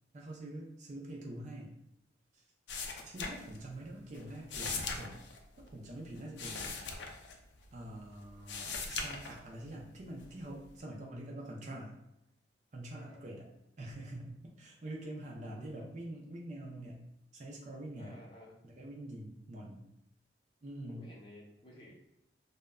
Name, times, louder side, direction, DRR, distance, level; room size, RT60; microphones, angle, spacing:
voice 1, 0.1-1.8 2.3-2.4 3.0-5.2 5.6-6.8 7.7-12.0 12.7-13.5 13.8-18.2 18.6-19.9 20.6-21.1, right 1 dB, 40° right, -2 dB, 0.4 m, -45 dB
sound 1, 2.7-3.9 4.1-7.9 8.3-9.7 10.2-10.8, left 4 dB, 70° left, 0.4 m, -40 dB
voice 2, 15.3-15.8 18.0-18.6 20.9-21.9, left 1 dB, 25° left, -5 dB, 0.6 m, -55 dB
2.2 x 2.0 x 3.4 m, 0.84 s
head